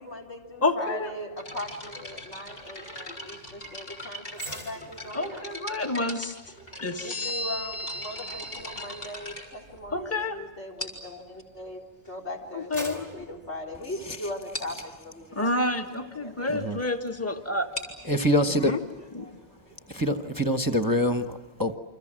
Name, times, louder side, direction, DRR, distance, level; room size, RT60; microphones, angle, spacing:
voice 1, 0.0-5.5 7.0-11.8 12.1-16.5, left 1 dB, 75° left, 0 dB, 4.3 m, -39 dB
voice 2, 0.6-1.1 5.1-6.4 6.8-9.1 9.9-10.4 12.5-13.1 15.3-17.7 18.6-18.8 19.1-19.3, left 2 dB, 15° left, 5 dB, 1.6 m, -30 dB
sound 1, 1.4-10.2 10.8-11.2 12.0-12.1 12.8-12.9 13.1-13.3 13.7-13.8 14.0-14.1 14.5-14.8 17.5-21.0, left 1 dB, 55° left, 4.8 m, -41 dB
sound 2, 4.3-11.7 12.2-14.5 14.9-15.1, equal, 35° left, 3.9 m, -47 dB
voice 3, 16.5-16.8 18.0-18.7 19.9-21.8, equal, 20° right, 7 dB, 1.1 m, -25 dB
29.0 x 26.0 x 7.6 m, 1.1 s
omnidirectional pair, 1.2 m